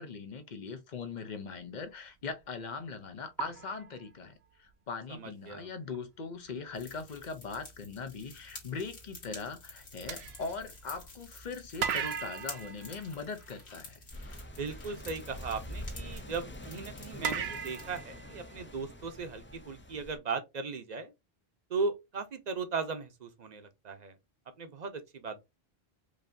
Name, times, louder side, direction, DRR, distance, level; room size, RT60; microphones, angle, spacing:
voice 1, 0.0-14.0, left 4 dB, 50° left, 0.7 m, -40 dB
sound 1, 2.2-2.4 3.4-4.7 5.9-6.0 6.5-6.7 10.1-11.3 11.8-13.9 17.2-19.0, right 7 dB, 80° right, 0.8 m, -38 dB
voice 2, 5.1-5.7 14.6-21.1 21.7-24.1 24.6-25.4, right 4 dB, 45° right, 0.8 m, -37 dB
sound 2, 6.7-18.0, left 2 dB, 85° left, 1.9 m, -50 dB
sound 3, 14.1-20.2, equal, 20° left, 0.3 m, -45 dB
4.9 x 2.7 x 2.6 m
omnidirectional pair, 1.1 m